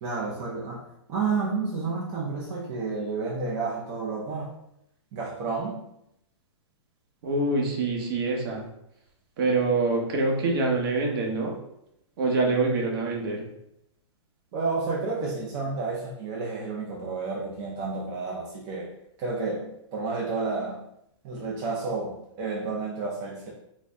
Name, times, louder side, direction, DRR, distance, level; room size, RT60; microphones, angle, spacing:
voice 1, 0.0-4.6 5.1-5.8 14.5-20.8 21.2-23.5, right 4 dB, 25° right, -3 dB, 0.5 m, -31 dB
voice 2, 7.2-8.7 9.4-11.5 12.2-13.4, right 3 dB, 45° right, 0 dB, 0.9 m, -25 dB
3.9 x 2.0 x 3.4 m, 0.79 s
hypercardioid pair, 155°, 16 cm